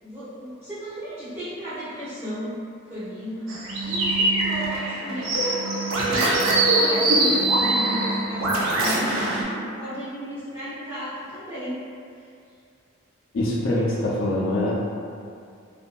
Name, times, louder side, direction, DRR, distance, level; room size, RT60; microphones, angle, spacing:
voice 1, 0.0-2.6 2.9-3.5 3.8-11.7, equal, 10° right, -14 dB, 1.0 m, -34 dB
sound 1, 3.5-9.4, right 2 dB, 75° right, 0.5 m, -22 dB
voice 2, 13.3-14.7, left 1 dB, 65° left, -6 dB, 0.4 m, -24 dB
2.6 x 2.4 x 2.2 m, 2.4 s
head